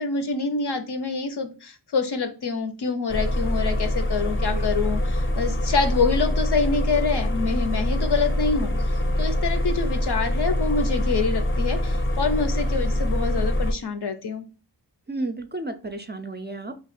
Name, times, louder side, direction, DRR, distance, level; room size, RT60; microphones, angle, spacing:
voice 1, 0.0-8.7 9.2-14.4, left 4 dB, 65° left, 8 dB, 0.7 m, -26 dB
sound 1, 3.1-13.7, left 1 dB, 30° left, 0.5 m, -24 dB
voice 2, 15.1-16.8, right 2 dB, 25° right, 7 dB, 0.4 m, -32 dB
3.0 x 2.3 x 4.2 m, 0.34 s
wide cardioid pair, 65°, 42 cm